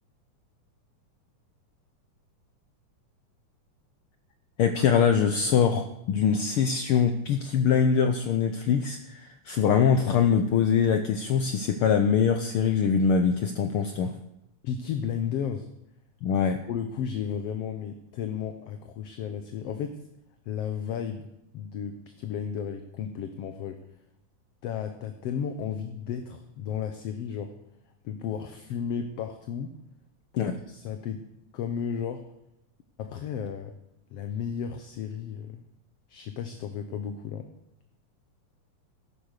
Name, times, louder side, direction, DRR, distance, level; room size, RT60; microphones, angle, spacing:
voice 1, 4.6-14.2 16.2-16.6 30.4-30.6, left 7 dB, 80° left, 8 dB, 1.2 m, -23 dB
voice 2, 14.6-15.7 16.7-20.0 20.5-23.8 24.6-27.6 28.0-29.7 30.3-31.2 31.5-32.2 33.0-33.7 34.1-35.6 36.1-37.5, left 8 dB, 65° left, 8 dB, 1.7 m, -33 dB
14.5 x 11.5 x 6.6 m, 0.86 s
omnidirectional pair, 3.6 m